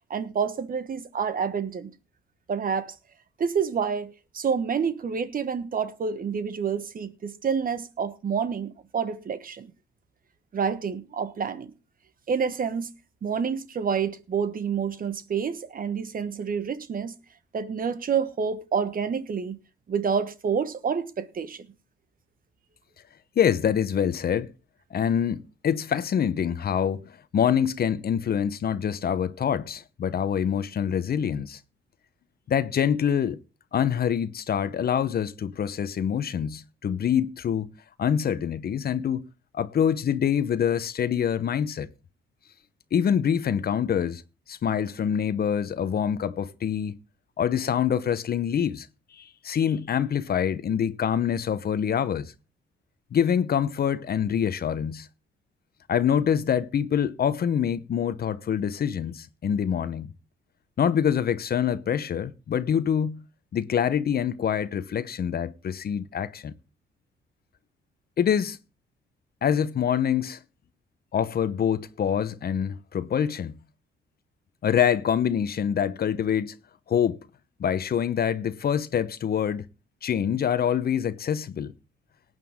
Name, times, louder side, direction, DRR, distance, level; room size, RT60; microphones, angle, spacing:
voice 1, 0.1-1.9 2.5-3.0 3.4-9.7 10.5-11.7 12.3-12.9 13.2-17.1 17.5-19.6 19.9-21.7, right 6 dB, 45° right, 1.2 m, -28 dB
voice 2, 23.4-24.5 24.9-31.6 32.5-33.4 33.7-37.7 38.0-39.2 39.5-41.9 42.9-44.2 44.5-47.0 47.4-48.9 49.2-52.3 53.1-55.1 55.9-60.1 60.8-63.2 63.5-66.5 68.2-68.6 69.4-70.4 71.1-73.6 74.6-76.5 76.9-77.2 77.6-79.7 80.0-81.7, left 8 dB, 50° left, 0.9 m, -25 dB
18.0 x 9.3 x 3.7 m
cardioid pair, 90°, 20 cm